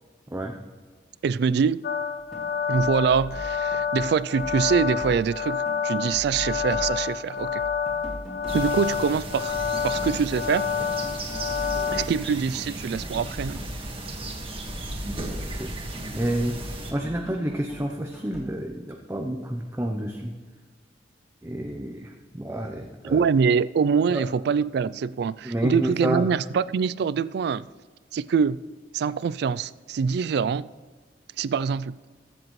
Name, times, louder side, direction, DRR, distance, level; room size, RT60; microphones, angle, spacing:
voice 1, 1.2-1.8 2.7-7.6 8.5-9.6 9.8-10.7 11.9-13.6 23.0-27.7 28.1-28.6 28.9-30.7 31.4-32.0, right 6 dB, 65° right, 0.3 m, -24 dB
sound 1, 1.8-12.0, left 6 dB, 55° left, 0.4 m, -28 dB
sound 2, 2.2-2.5 2.7-4.1 4.4-5.8 6.1-18.4, left 1 dB, ahead, 2.6 m, -40 dB
sound 3, 8.5-16.9, right 2 dB, 30° right, 1.7 m, -36 dB
voice 2, 16.1-20.3 21.4-23.3 24.1-24.3 25.4-26.3, right 1 dB, 15° right, 0.6 m, -29 dB
22.0 x 7.7 x 3.1 m
head